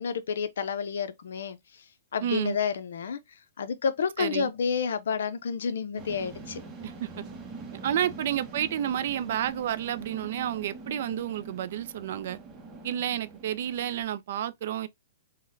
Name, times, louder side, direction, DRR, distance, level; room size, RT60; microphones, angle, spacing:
voice 1, 0.0-1.8 2.1-3.2 3.6-6.6 8.0-8.1, left 6 dB, 75° left, 0.5 m, -30 dB
voice 2, 2.2-2.6 4.2-4.5 6.8-7.2 7.8-12.4 12.8-14.9, right 10 dB, 55° right, 0.3 m, -30 dB
sound 1, 6.0-14.0, right 3 dB, 20° right, 0.6 m, -44 dB
3.9 x 2.1 x 2.5 m
hypercardioid pair, 155°, 0 cm